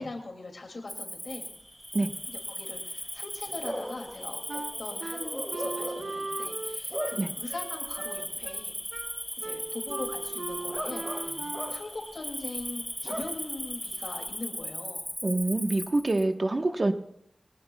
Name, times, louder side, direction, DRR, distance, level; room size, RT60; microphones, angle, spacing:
voice 1, 0.0-1.5 2.3-8.7 9.4-11.4 11.7-15.1, left 2 dB, 70° left, 3 dB, 2.5 m, -41 dB
Cricket, 0.9-16.2, equal, 5° left, 2.2 m, -38 dB
Bark / Cricket, 1.4-14.7, equal, 10° right, 3.1 m, -42 dB
Wind instrument woodwind instrument, 4.5-11.9, right 3 dB, 65° right, 0.7 m, -39 dB
voice 2, 15.2-16.9, right 2 dB, 50° right, 5 dB, 1.2 m, -26 dB
22.5 x 18.5 x 2.3 m, 0.77 s
wide cardioid pair, 75°, 0 cm